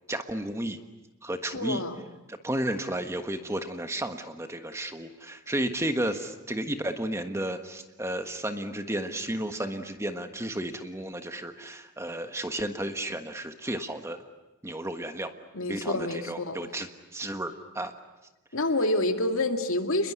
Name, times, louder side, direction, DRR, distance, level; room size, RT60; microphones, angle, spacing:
voice 1, 0.1-0.8 1.2-1.8 2.3-14.2 14.6-15.3 15.7-17.9, right 1 dB, 15° right, 7 dB, 1.4 m, -33 dB
voice 2, 1.5-2.0 15.5-16.6 18.5-20.1, left 1 dB, 70° left, 6 dB, 2.3 m, -28 dB
29.0 x 21.5 x 9.6 m, 1.0 s
head